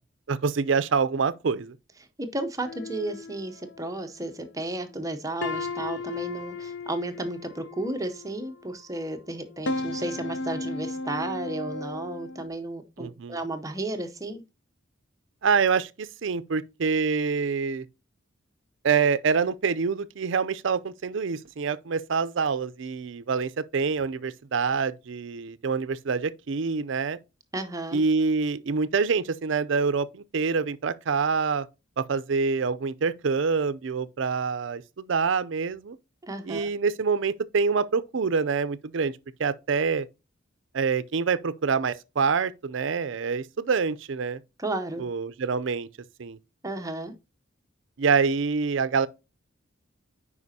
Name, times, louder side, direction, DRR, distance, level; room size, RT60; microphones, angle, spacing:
voice 1, 0.3-1.7 13.0-13.4 15.4-17.9 18.8-27.2 27.9-31.7 32.0-36.0 36.4-40.1 40.7-44.4 45.0-45.9 46.2-46.4 48.0-49.1, right 5 dB, 65° right, 0.5 m, -26 dB
voice 2, 2.2-14.4 27.5-28.0 36.2-36.7 44.6-45.0 46.6-47.1, right 2 dB, 15° right, 0.7 m, -33 dB
sound 1, 2.6-4.5 5.0-5.1 5.4-8.7 9.3-12.5, left 2 dB, 55° left, 0.5 m, -35 dB
9.7 x 4.9 x 2.7 m
head